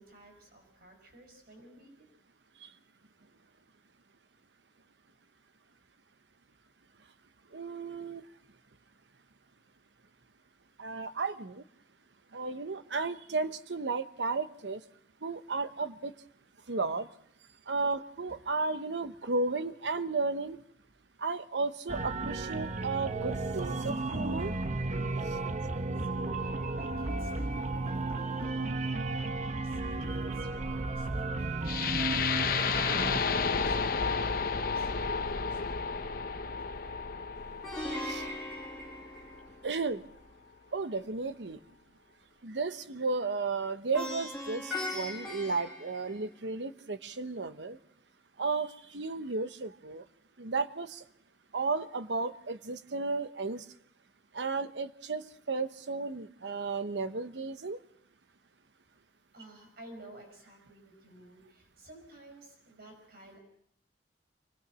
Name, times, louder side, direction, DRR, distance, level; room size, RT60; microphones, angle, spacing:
voice 1, 0.0-2.1 18.3-18.4 26.0-35.9 59.3-63.4, right 1 dB, 60° right, 4 dB, 5.5 m, -55 dB
voice 2, 7.5-8.2 10.8-11.6 12.3-14.8 15.2-16.1 16.7-17.1 17.7-20.6 21.2-24.5 38.0-38.2 39.6-40.0 40.7-41.6 42.4-47.8 48.4-50.0 50.4-51.0 51.5-53.6 54.3-57.8, right 3 dB, 90° right, 10 dB, 1.0 m, -34 dB
sound 1, 21.9-33.2, right 2 dB, 40° right, 1.1 m, -33 dB
sound 2, 31.7-39.7, left 5 dB, 55° left, 1.0 m, -32 dB
Plucked string instrument, 37.6-39.8 43.9-46.5, left 1 dB, ahead, 6.6 m, -39 dB
25.0 x 20.0 x 6.2 m, 0.70 s
head